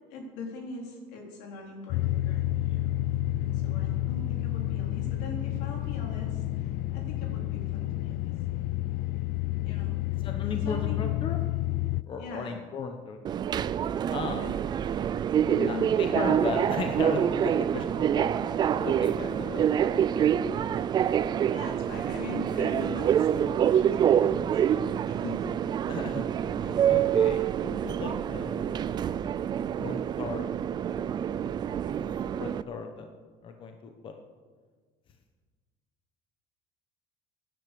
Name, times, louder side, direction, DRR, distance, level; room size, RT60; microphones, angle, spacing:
voice 1, 0.1-2.9 3.4-8.2 9.6-10.0 10.5-11.0 12.2-12.7 14.4-14.6 15.5-16.2 21.5-25.5, left 4 dB, 75° left, 1 dB, 3.8 m, -42 dB
sound 1, 1.9-12.0, left 15 dB, 55° left, 0.4 m, -30 dB
voice 2, 10.2-11.4 12.1-13.2 14.1-14.4 15.7-19.9 25.9-29.2 29.8-30.5 30.8-31.0 32.0-33.1 33.4-34.1, left 5 dB, 30° left, 5 dB, 1.0 m, -37 dB
Subway metro underground, 13.2-32.6, right 9 dB, 25° right, 0.3 m, -26 dB
17.0 x 10.5 x 6.8 m, 1.5 s
cardioid pair, 165°, 17 cm